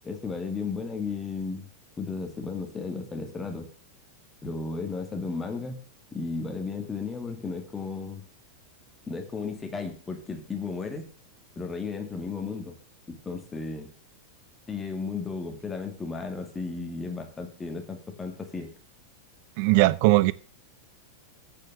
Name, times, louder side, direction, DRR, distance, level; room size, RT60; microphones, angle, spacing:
voice 1, 0.0-1.7 2.0-3.7 4.4-5.8 6.1-8.2 9.1-11.1 11.6-12.8 13.1-13.9 14.7-18.7, left 4 dB, 15° left, 2.2 m, -34 dB
voice 2, 19.6-20.3, right 20 dB, 45° right, 0.5 m, -19 dB
8.6 x 6.7 x 6.6 m
figure-of-eight pair, 90°, 0 cm